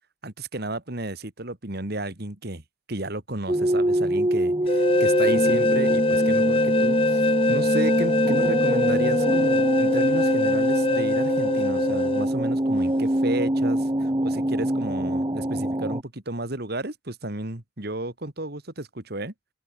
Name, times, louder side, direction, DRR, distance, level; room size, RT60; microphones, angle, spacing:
voice 1, 0.2-2.6 2.9-7.2 7.5-19.3, right 2 dB, 50° right, 2.3 m, -33 dB
sound 1, 3.5-16.0, right 1 dB, 20° right, 1.2 m, -24 dB
sound 2, 4.7-12.3, left 2 dB, 25° left, 1.0 m, -23 dB
open air
head